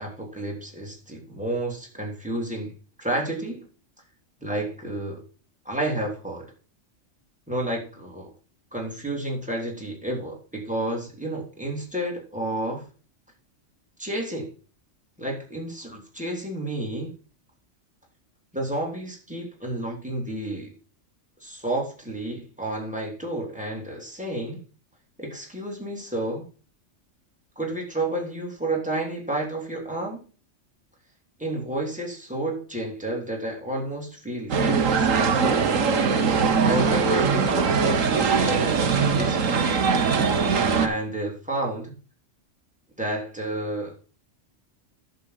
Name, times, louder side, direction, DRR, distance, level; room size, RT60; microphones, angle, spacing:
voice 1, 0.0-2.7 3.0-3.6 4.4-5.2 5.6-6.5 7.5-8.3 8.7-12.8 14.0-14.5 15.2-17.1 18.5-20.7 21.4-24.6 25.2-26.5 27.6-30.2 31.4-35.7 36.6-38.8 39.2-39.8 40.8-41.9 43.0-43.9, right 1 dB, 5° right, -1 dB, 3.0 m, -30 dB
sound 1, 34.5-40.9, right 5 dB, 85° right, 1.5 m, -21 dB
11.0 x 7.2 x 4.1 m, 0.36 s
omnidirectional pair, 1.3 m